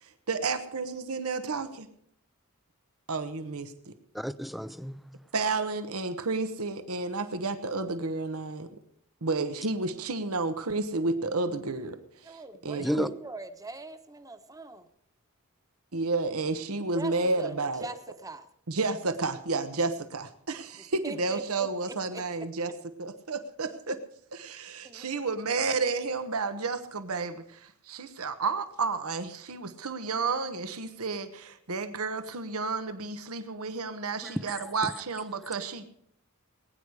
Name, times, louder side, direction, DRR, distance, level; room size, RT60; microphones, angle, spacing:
voice 1, 0.3-1.9 3.1-3.9 5.3-8.7 9.2-12.0 12.2-13.1 15.9-17.9 18.7-22.7 23.0-24.0 24.4-35.8, right 3 dB, 85° right, 1.2 m, -31 dB
voice 2, 4.1-5.3 12.8-13.1 34.2-34.9, equal, ahead, 0.4 m, -33 dB
voice 3, 12.2-14.9 16.9-18.5 20.8-22.2 23.9-24.0 24.8-25.1, right 3 dB, 15° right, 1.1 m, -42 dB
20.5 x 9.8 x 4.8 m
head